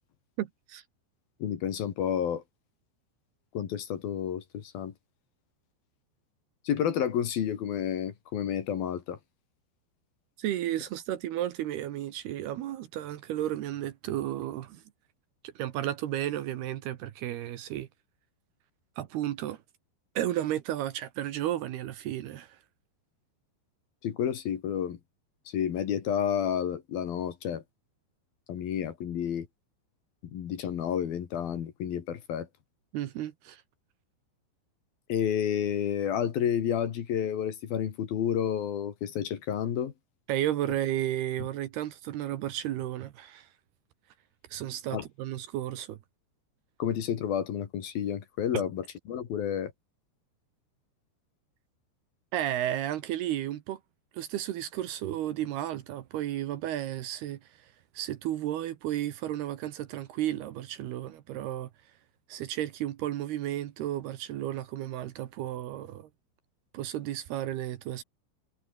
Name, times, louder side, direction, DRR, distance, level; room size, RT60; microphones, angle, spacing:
voice 1, 0.4-0.8 10.4-14.8 15.4-17.9 19.0-19.6 20.2-22.6 32.9-33.6 40.3-43.5 44.5-46.0 52.3-53.8 54.1-61.7 62.3-66.1 66.7-68.0, right 12 dB, 70° right, 3.0 m, -33 dB
voice 2, 1.4-2.4 3.5-4.9 6.7-9.2 24.0-25.0 25.5-27.6 28.5-29.5 30.3-32.5 35.1-39.9 44.9-45.1 46.8-49.7, left 9 dB, 60° left, 3.6 m, -30 dB
omnidirectional pair, 5.3 m